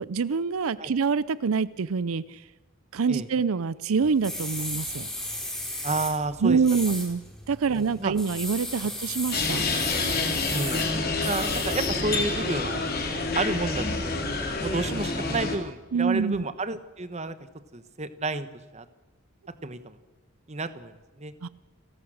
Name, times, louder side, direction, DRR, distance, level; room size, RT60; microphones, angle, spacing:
voice 1, 0.0-2.4 2.9-5.1 6.4-7.2 7.5-9.6 15.9-16.4 21.4-21.5, right 5 dB, 85° right, 18 dB, 0.5 m, -26 dB
sound 1, 4.0-12.1, left 1 dB, ahead, 3.7 m, -36 dB
voice 2, 5.8-6.6 7.7-8.1 10.5-10.8 11.2-12.8 13.1-14.1 14.4-17.3 17.7-18.5 18.7-18.8 19.6-20.0 20.5-21.3, right 3 dB, 30° right, 12 dB, 1.1 m, -31 dB
sound 2, 9.3-15.6, left 3 dB, 45° left, 3.5 m, -28 dB
29.5 x 14.0 x 6.4 m, 1.2 s
head